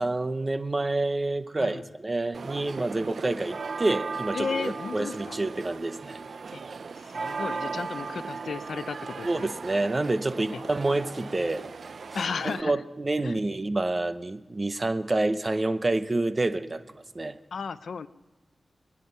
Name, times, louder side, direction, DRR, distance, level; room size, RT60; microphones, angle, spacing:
voice 1, 0.0-6.2 9.2-11.7 12.4-16.8 17.1-17.4, right 2 dB, 35° right, 11 dB, 0.8 m, -28 dB
sound 1, 2.3-12.6, right 4 dB, 75° right, 0.4 m, -37 dB
voice 2, 4.3-5.4 6.5-6.6 7.0-9.5 10.5-10.6 12.1-12.8 13.2-13.4 17.5-18.1, left 5 dB, 90° left, 14 dB, 0.5 m, -34 dB
25.5 x 9.9 x 5.5 m, 1.2 s
wide cardioid pair, 80°, 0 cm